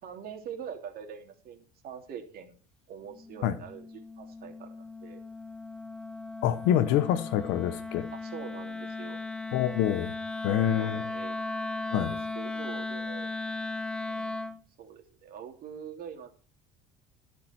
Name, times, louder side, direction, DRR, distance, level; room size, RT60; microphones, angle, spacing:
voice 1, 0.0-2.6 2.9-5.2 8.1-9.2 10.7-11.4 11.8-13.3 14.0-16.3, right 8 dB, 55° right, 3.2 m, -44 dB
Wind instrument woodwind instrument, 3.1-14.6, left 3 dB, 5° left, 0.8 m, -37 dB
voice 2, 6.4-8.1 9.5-10.1 10.4-11.1 11.9-12.1, left 11 dB, 70° left, 1.2 m, -26 dB
18.0 x 6.0 x 4.6 m
supercardioid pair, 95°, 19 cm